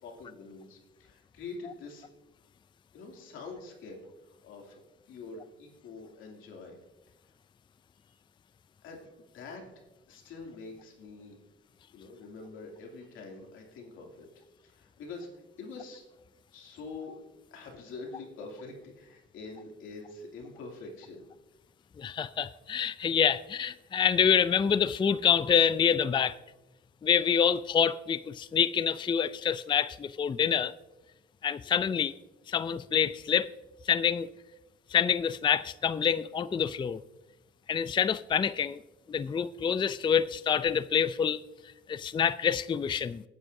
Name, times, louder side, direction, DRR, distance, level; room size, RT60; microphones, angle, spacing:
voice 1, 0.0-2.1 2.9-6.8 7.2-7.3 8.1-8.2 8.8-9.6 10.1-11.4 11.9-14.3 14.6-15.3 15.6-16.0 16.5-17.2 17.5-21.3, left 3 dB, 90° left, 2.7 m, -45 dB
voice 2, 22.0-26.4 27.0-30.7 31.4-32.1 32.5-33.5 33.9-34.3 34.9-37.0 37.7-38.8 39.1-41.4 41.9-43.2, left 7 dB, 25° left, 0.4 m, -26 dB
20.5 x 9.6 x 2.7 m
cardioid pair, 90°, 20 cm